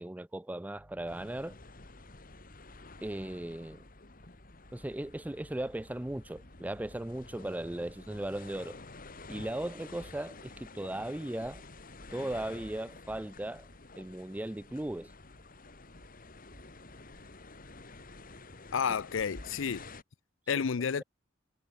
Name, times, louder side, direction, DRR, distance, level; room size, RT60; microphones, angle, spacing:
voice 1, 0.0-1.5 3.0-3.8 4.7-8.8 9.3-11.6 12.1-13.6 13.9-15.1, right 1 dB, 10° right, 0.4 m, -37 dB
Piano, 0.8-12.1, equal, 25° left, 5.1 m, -63 dB
sound 1, 1.1-20.0, left 3 dB, 45° left, 2.7 m, -51 dB
sound 2, 5.2-18.4, equal, 60° right, 5.4 m, -62 dB
voice 2, 18.7-19.8 20.5-21.0, left 6 dB, 85° left, 0.5 m, -30 dB
head